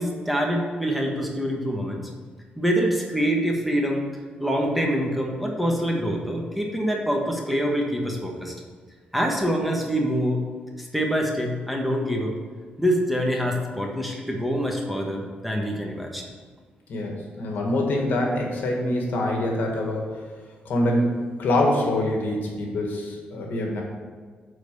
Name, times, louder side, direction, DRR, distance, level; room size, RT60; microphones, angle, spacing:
voice 1, 0.0-2.1 2.6-4.0 4.4-8.5 9.1-10.4 10.8-12.3 12.8-16.2, equal, ahead, 0 dB, 1.4 m, -25 dB
voice 2, 16.9-20.2 20.7-23.8, left 1 dB, 75° left, 0 dB, 1.8 m, -25 dB
8.2 x 4.3 x 6.8 m, 1.6 s
cardioid pair, 90°, 3 cm